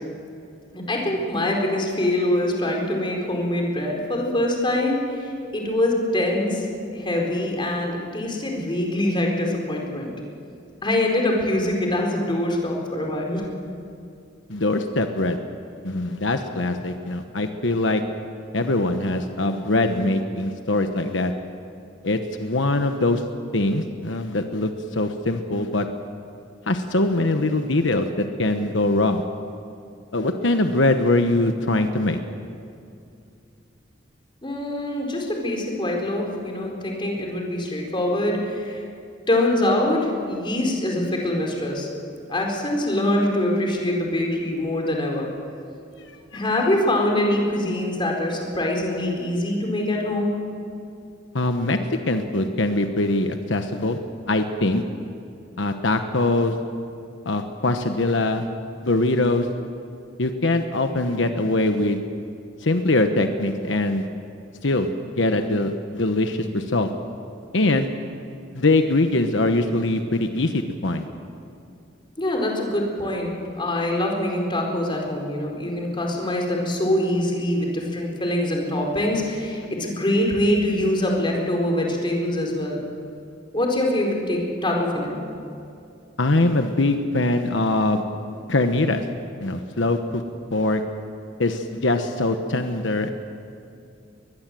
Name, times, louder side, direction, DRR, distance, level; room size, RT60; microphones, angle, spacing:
voice 1, 0.7-6.7 6.9-10.1 10.8-13.5 34.4-38.8 39.3-41.9 42.3-45.3 46.3-50.4 72.2-82.8 83.5-85.2, left 1 dB, 25° left, 0 dB, 4.4 m, -24 dB
voice 2, 14.5-15.4 15.8-18.0 18.5-21.3 22.0-23.2 23.5-25.9 26.7-29.3 30.1-32.2 51.3-51.8 52.1-54.0 54.3-54.8 55.6-56.5 57.2-58.4 58.8-59.5 60.2-62.0 62.6-64.1 64.6-64.9 65.2-66.9 67.5-67.9 68.5-71.1 86.2-88.0 88.5-89.0 89.4-90.2 90.5-90.8 91.4-93.1, left 2 dB, 80° left, 6 dB, 1.2 m, -22 dB
22.0 x 21.0 x 7.7 m, 2.5 s
head